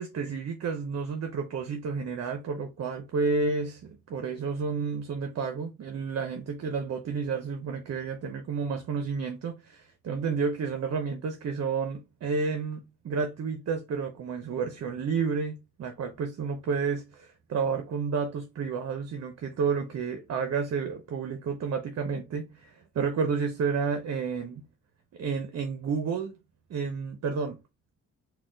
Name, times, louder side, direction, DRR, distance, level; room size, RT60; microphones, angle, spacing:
voice 1, 0.0-24.7 25.1-26.4 26.7-27.6, right 5 dB, 50° right, 0.7 m, -31 dB
4.1 x 2.3 x 3.7 m
cardioid pair, 120°, 32 cm